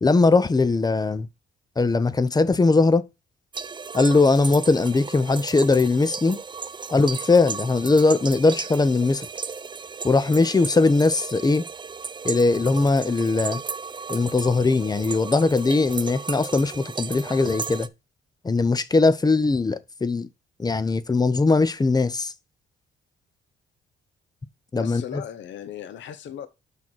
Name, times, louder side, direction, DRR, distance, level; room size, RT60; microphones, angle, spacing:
voice 1, 0.0-1.3 1.8-3.0 3.9-6.4 6.9-9.3 10.0-11.6 12.2-13.6 14.1-17.9 18.4-20.3 20.6-22.3 24.7-25.0, left 3 dB, 20° left, 0.7 m, -20 dB
sound 1, 3.5-17.9, right 5 dB, 25° right, 0.5 m, -35 dB
voice 2, 24.7-26.5, left 9 dB, 70° left, 0.8 m, -37 dB
6.2 x 5.9 x 4.5 m
cardioid pair, 90°, 20 cm